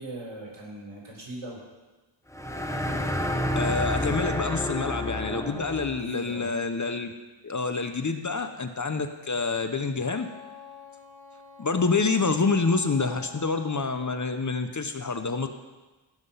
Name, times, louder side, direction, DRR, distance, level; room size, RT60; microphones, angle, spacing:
voice 1, 0.0-1.6 6.0-6.5, right 2 dB, 75° right, -2 dB, 4.3 m, -39 dB
sound 1, 2.3-6.1, left 1 dB, 5° left, 0.9 m, -29 dB
voice 2, 3.5-7.1 7.4-10.3 11.6-15.5, left 4 dB, 35° left, 8 dB, 0.8 m, -27 dB
Wind instrument woodwind instrument, 10.0-14.3, left 5 dB, 75° left, 3.2 m, -48 dB
17.0 x 6.0 x 5.6 m, 1.2 s
wide cardioid pair, 90°, 50 cm